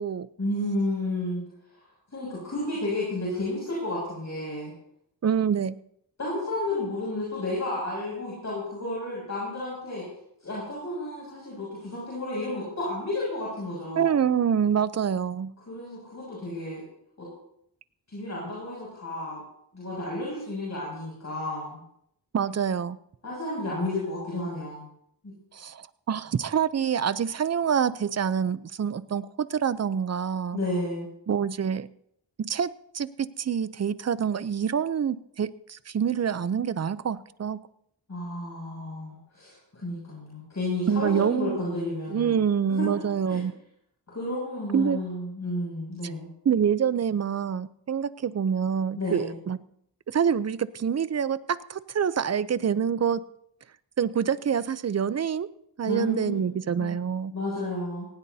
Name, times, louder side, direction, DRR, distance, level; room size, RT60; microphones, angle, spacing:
voice 1, 0.4-1.4 1.7-1.8 2.1-4.7 6.2-10.1 10.4-14.1 15.6-16.8 17.2-17.3 18.1-19.4 19.7-21.8 23.2-24.9 25.2-25.3 30.5-31.1 38.1-42.4 42.7-43.4 44.1-46.3 49.0-49.3 55.8-57.0 57.3-58.1, left 1 dB, 40° left, -6 dB, 6.9 m, -32 dB
voice 2, 5.2-5.8 14.0-15.5 22.3-23.0 25.5-30.6 31.3-31.9 32.4-37.6 40.9-41.6 42.1-43.5 44.7-45.0 46.4-49.6 50.1-53.2 54.0-55.5 55.8-57.3, right 7 dB, 35° right, 16 dB, 0.6 m, -26 dB
18.5 x 17.0 x 2.8 m, 0.73 s
wide cardioid pair, 95°, 43 cm